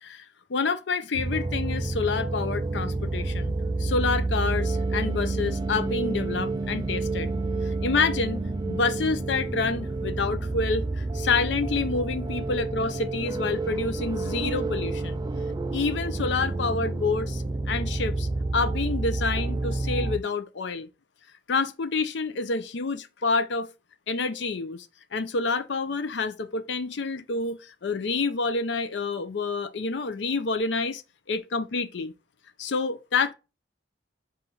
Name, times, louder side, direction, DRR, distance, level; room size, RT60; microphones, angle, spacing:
voice 1, 0.0-3.5 3.8-7.3 7.6-15.2 15.7-20.9 21.5-23.7 24.1-24.9 25.1-31.0 31.3-32.1 32.6-33.3, left 4 dB, 70° left, 0.5 m, -28 dB
sound 1, 1.1-20.2, right 2 dB, 20° right, 0.4 m, -29 dB
4.3 x 2.5 x 3.9 m
head